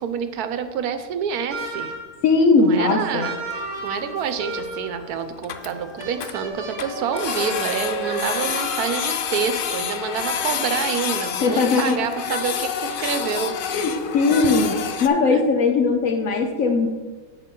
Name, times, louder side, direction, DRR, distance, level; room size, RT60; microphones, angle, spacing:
voice 1, 0.0-1.9 2.6-3.4 3.8-13.6 14.3-14.6 15.3-15.4, right 7 dB, 85° right, 10 dB, 1.2 m, -27 dB
sound 1, 1.5-2.2 3.2-5.0 6.0-9.2, right 2 dB, 25° right, 1.4 m, -33 dB
voice 2, 2.2-3.3 11.4-12.0 13.7-16.9, left 4 dB, 70° left, 5 dB, 1.1 m, -19 dB
Printer, 3.5-3.6 3.8-3.9 4.3-4.4 4.6-4.7 5.0-5.1 5.3-6.3 6.8-15.1, left 7 dB, 85° left, 0.4 m, -28 dB
8.4 x 7.6 x 3.7 m, 1.4 s
omnidirectional pair, 1.6 m